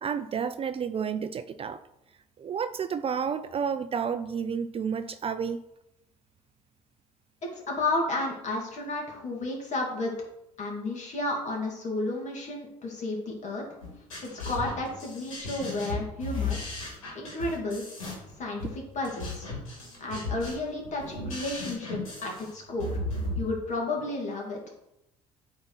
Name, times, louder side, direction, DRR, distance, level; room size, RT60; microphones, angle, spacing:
voice 1, 0.0-1.8 2.4-5.6, right 7 dB, 35° right, 12 dB, 0.5 m, -31 dB
voice 2, 7.5-10.1 10.6-13.6 14.3-16.6 17.1-17.8 18.4-19.5 20.0-23.0 23.4-24.6, left 2 dB, 45° left, -1 dB, 2.7 m, -32 dB
sound 1, 13.8-23.4, left 2 dB, 85° left, 2.5 m, -35 dB
8.6 x 4.1 x 4.1 m, 0.84 s
hypercardioid pair, 60°, 17 cm